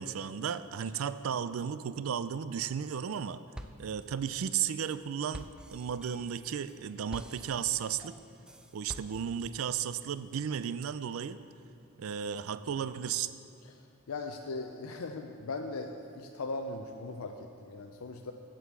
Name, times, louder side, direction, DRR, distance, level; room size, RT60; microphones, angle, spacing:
voice 1, 0.0-3.4 3.8-8.1 8.7-11.4 12.0-13.3, right 8 dB, 75° right, 14 dB, 0.4 m, -34 dB
sound 1, 2.7-3.2 3.5-9.6, equal, 5° right, 0.4 m, -48 dB
voice 2, 14.1-18.3, left 3 dB, 85° left, 4 dB, 0.5 m, -39 dB
8.0 x 7.7 x 6.9 m, 2.6 s
head